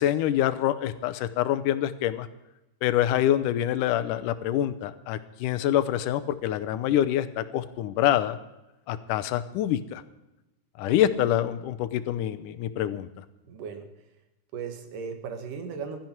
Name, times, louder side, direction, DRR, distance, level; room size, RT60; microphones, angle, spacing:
voice 1, 0.0-2.3 2.8-8.4 8.9-10.0 10.8-13.1, left 11 dB, 80° left, 11 dB, 2.3 m, -26 dB
voice 2, 13.5-13.9 14.5-16.1, right 6 dB, 85° right, 7 dB, 3.2 m, -36 dB
16.0 x 13.0 x 4.5 m, 0.96 s
omnidirectional pair, 3.7 m